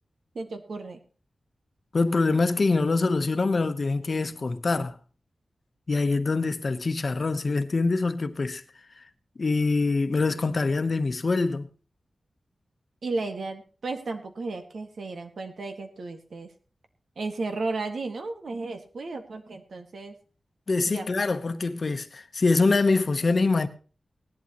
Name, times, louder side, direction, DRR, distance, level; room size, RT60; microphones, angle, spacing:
voice 1, 0.3-1.0 13.0-16.5 17.2-20.2 20.9-21.1, right 3 dB, 70° right, 1.9 m, -34 dB
voice 2, 1.9-4.9 5.9-8.6 9.4-11.7 20.7-23.7, left 3 dB, 45° left, 1.0 m, -24 dB
18.0 x 11.5 x 3.0 m
wide cardioid pair, 130°, 0 cm